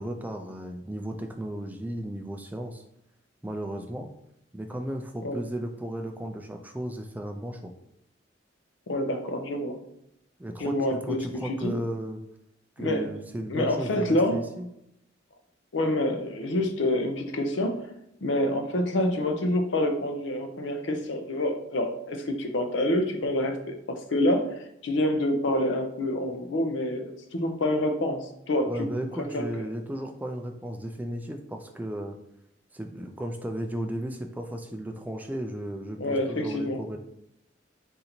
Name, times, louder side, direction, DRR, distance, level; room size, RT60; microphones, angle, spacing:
voice 1, 0.0-2.8 3.4-4.1 4.5-7.7 10.4-12.2 12.8-14.7 28.6-32.2 32.7-37.0, right 1 dB, 10° right, 4 dB, 0.3 m, -35 dB
voice 2, 8.9-9.8 10.6-11.7 12.8-13.1 13.5-14.4 15.7-17.8 18.2-23.6 23.9-28.7 29.3-29.5 36.0-36.8, left 1 dB, 75° left, 5 dB, 0.6 m, -27 dB
3.8 x 2.7 x 4.3 m, 0.79 s
head